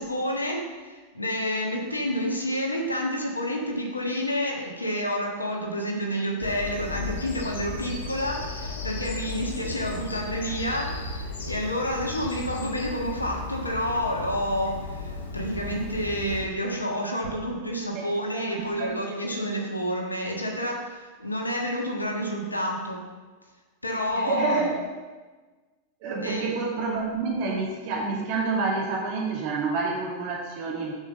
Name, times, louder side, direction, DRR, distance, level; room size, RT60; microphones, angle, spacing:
voice 1, 0.0-23.0 23.8-24.7 26.2-26.5, equal, 80° left, 1 dB, 1.4 m, -29 dB
Bird vocalization bird call bird song, 6.4-16.4, left 4 dB, 65° left, 1.1 m, -35 dB
voice 2, 18.5-18.9 24.1-24.8 26.0-30.9, right 4 dB, 45° right, -3 dB, 2.4 m, -28 dB
7.2 x 5.5 x 6.4 m, 1.3 s
figure-of-eight pair, 90°, 0 cm